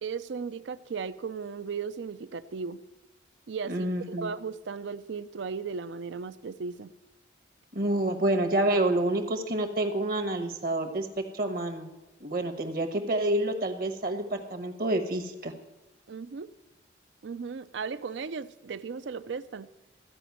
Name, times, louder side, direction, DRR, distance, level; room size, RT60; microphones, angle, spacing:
voice 1, 0.0-2.8 3.5-6.9 16.1-16.5 17.2-19.7, right 5 dB, 70° right, 14 dB, 0.4 m, -36 dB
voice 2, 3.7-4.3 7.7-11.9 12.2-15.5, right 1 dB, 50° right, 7 dB, 1.1 m, -28 dB
14.5 x 5.0 x 9.3 m, 1.1 s
head